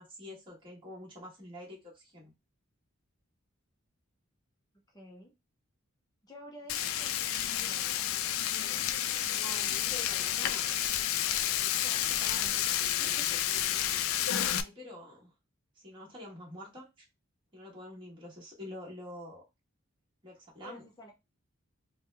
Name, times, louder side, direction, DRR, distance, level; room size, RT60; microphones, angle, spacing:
voice 1, 0.0-2.3 6.8-6.9 9.2-10.8 12.2-12.8 14.6-15.3 15.7-17.1 17.5-19.4 20.2-20.8, left 1 dB, 25° right, -5 dB, 1.5 m, -47 dB
voice 2, 4.7-5.3 6.2-8.3 8.6-8.9 11.8-12.6 13.0-13.4 20.6-21.1, equal, 20° left, 0 dB, 0.7 m, -52 dB
Frying (food), 6.7-14.6, left 11 dB, 70° left, 0.3 m, -30 dB
3.5 x 2.2 x 3.2 m, 0.23 s
head